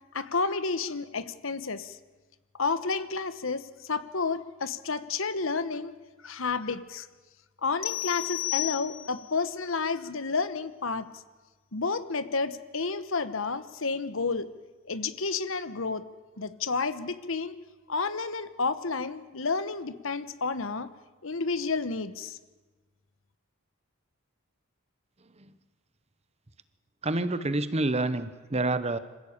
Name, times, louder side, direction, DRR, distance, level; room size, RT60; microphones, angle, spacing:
voice 1, 0.1-2.0 2.6-5.9 6.2-7.1 7.6-11.2 11.7-14.5 14.9-16.0 16.4-17.6 17.9-20.9 21.2-22.4, left 4 dB, 65° left, 13 dB, 1.1 m, -31 dB
sound 1, 7.8-9.4, left 19 dB, 80° left, 1.6 m, -32 dB
voice 2, 27.0-29.0, right 2 dB, 30° right, 13 dB, 1.0 m, -28 dB
26.0 x 15.5 x 8.7 m, 1.3 s
head